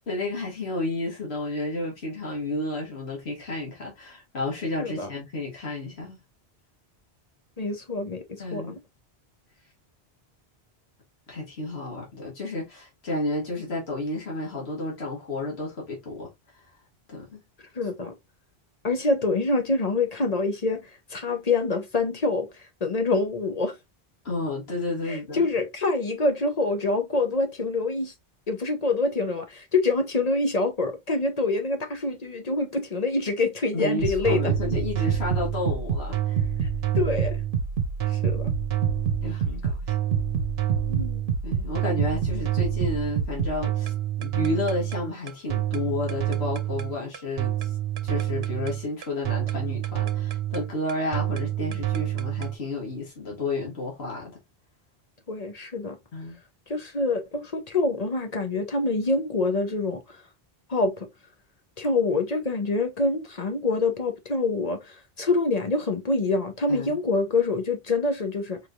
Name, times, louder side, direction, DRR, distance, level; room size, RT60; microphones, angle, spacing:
voice 1, 0.1-6.2 8.4-8.8 11.3-16.3 17.1-17.4 24.2-25.5 33.7-36.5 39.2-40.0 41.4-43.9 44.2-47.7 48.0-54.4 56.1-56.4 66.7-67.0, left 2 dB, 80° left, 1.8 m, -31 dB
voice 2, 4.8-5.1 7.6-8.8 17.8-18.1 18.8-22.5 22.8-23.7 25.1-28.1 28.5-34.5 36.6-36.7 36.9-37.4 38.1-38.5 40.9-41.2 55.3-56.0 56.7-60.0 60.7-61.1 61.8-68.6, left 3 dB, 40° left, 0.9 m, -26 dB
sound 1, 34.0-52.5, right 9 dB, 75° right, 0.9 m, -27 dB
4.7 x 3.1 x 2.5 m
omnidirectional pair, 1.1 m